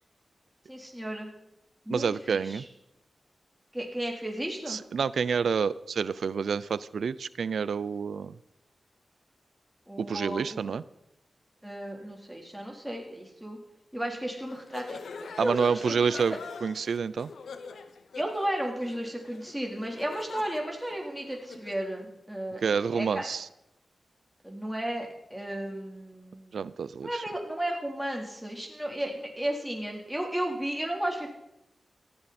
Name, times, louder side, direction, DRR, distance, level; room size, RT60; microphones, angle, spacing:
voice 1, 0.7-1.3 1.9-2.6 3.7-4.8 9.9-10.6 11.6-13.6 13.9-15.0 15.4-15.9 18.2-23.3 24.4-26.6 27.0-31.3, right 1 dB, 5° right, 0 dB, 3.6 m, -34 dB
voice 2, 1.9-2.6 4.7-8.3 10.0-10.8 15.4-17.3 22.6-23.5 26.5-27.2, right 6 dB, 85° right, 18 dB, 0.5 m, -28 dB
sound 1, 14.4-21.9, left 5 dB, 90° left, 1.1 m, -44 dB
17.0 x 14.0 x 4.3 m, 0.85 s
cardioid pair, 50°, 0 cm